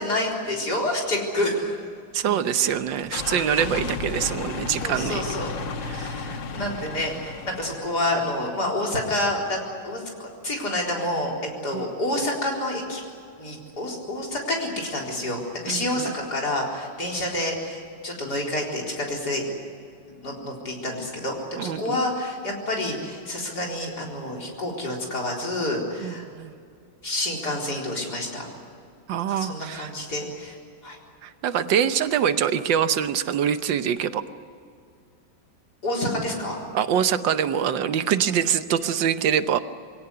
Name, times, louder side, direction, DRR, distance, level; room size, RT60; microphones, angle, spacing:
voice 1, 0.0-1.8 3.3-3.8 4.8-5.5 5.9-11.3 11.6-13.0 13.4-19.4 20.1-26.3 27.0-28.5 29.3-30.6 30.8-31.0 35.8-36.6, left 1 dB, 60° left, -1 dB, 4.7 m, -28 dB
voice 2, 2.1-5.2 5.9-6.2 11.7-11.8 15.7-16.1 21.6-22.0 26.0-26.5 29.1-29.9 31.2-34.2 36.7-39.6, right 8 dB, 80° right, 11 dB, 1.6 m, -24 dB
sound 1, 2.6-8.2, left 4 dB, 75° left, 2.1 m, -34 dB
24.0 x 17.0 x 9.7 m, 2.3 s
omnidirectional pair, 2.0 m